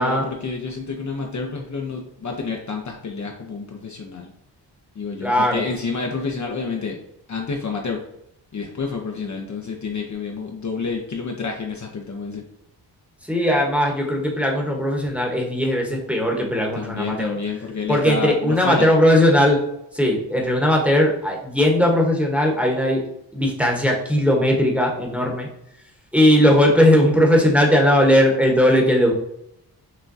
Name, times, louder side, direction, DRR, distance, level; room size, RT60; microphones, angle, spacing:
voice 1, 0.0-4.3 4.9-7.0 7.3-8.0 8.5-12.4 16.7-18.9, left 4 dB, 40° left, 1 dB, 0.7 m, -29 dB
voice 2, 5.2-5.6 13.3-17.4 17.9-19.6 19.9-23.0 23.3-25.5 26.1-29.1, equal, 5° right, -1 dB, 1.1 m, -18 dB
6.1 x 2.2 x 2.7 m, 0.78 s
cardioid pair, 60°, 44 cm